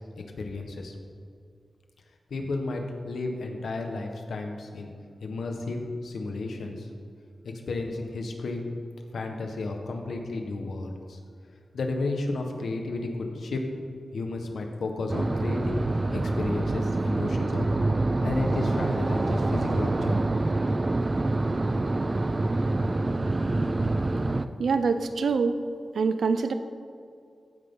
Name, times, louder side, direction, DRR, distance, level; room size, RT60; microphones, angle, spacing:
voice 1, 0.2-0.9 2.3-4.9 5.2-6.9 7.4-8.6 9.1-11.2 11.7-13.6 14.1-15.8 16.1-17.7 18.2-20.1, left 3 dB, 90° left, 3 dB, 1.5 m, -32 dB
sound 1, 15.1-24.5, right 2 dB, 30° right, 0.5 m, -26 dB
voice 2, 24.6-25.6 25.9-26.5, right 5 dB, 85° right, 9 dB, 0.7 m, -24 dB
14.5 x 9.9 x 3.9 m, 2.3 s
wide cardioid pair, 105°, 0 cm